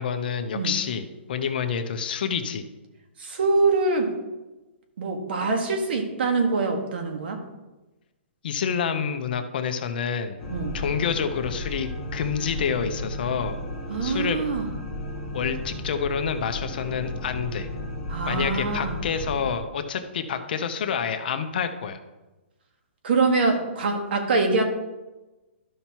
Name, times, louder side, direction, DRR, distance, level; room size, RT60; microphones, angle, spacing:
voice 1, 0.0-2.6 8.4-10.4 10.7-13.6 14.0-14.4 15.3-17.7 18.3-22.0, left 7 dB, 50° left, 8 dB, 0.8 m, -28 dB
voice 2, 3.2-4.1 5.0-7.4 10.5-10.8 13.9-14.7 18.1-19.0 23.0-24.6, right 3 dB, 55° right, 4 dB, 1.5 m, -24 dB
sound 1, 10.4-19.6, left 1 dB, 5° left, 1.1 m, -34 dB
12.5 x 5.6 x 3.0 m, 1.1 s
hypercardioid pair, 165°, 7 cm